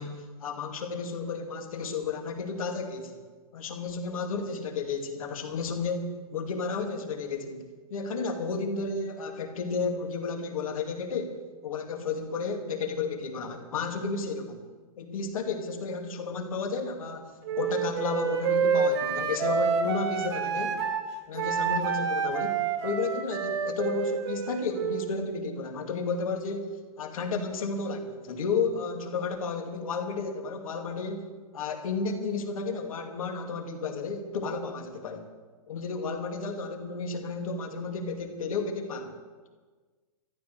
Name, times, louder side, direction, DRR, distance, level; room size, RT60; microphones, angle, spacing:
voice 1, 0.0-3.2 3.5-7.6 7.9-14.6 15.0-20.8 21.3-26.7 27.0-35.3 35.7-39.2, left 4 dB, 70° left, 4 dB, 2.3 m, -32 dB
Wind instrument woodwind instrument, 17.4-21.0 21.3-25.1, right 6 dB, 45° right, 1.9 m, -28 dB
13.5 x 11.0 x 6.6 m, 1.4 s
hypercardioid pair, 160°, 19 cm